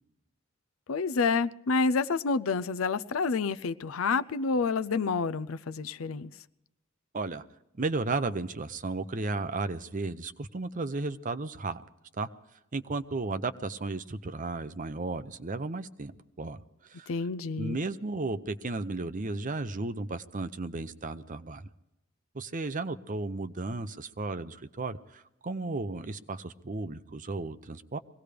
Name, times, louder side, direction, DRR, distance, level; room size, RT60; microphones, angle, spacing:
voice 1, 0.9-6.3 17.1-17.8, left 4 dB, 75° left, 15 dB, 0.5 m, -28 dB
voice 2, 7.8-11.8 12.2-12.3 12.7-16.6 16.9-17.1 17.6-21.6 22.3-28.0, right 3 dB, 40° right, 11 dB, 0.7 m, -34 dB
23.0 x 17.5 x 3.4 m, 0.90 s
head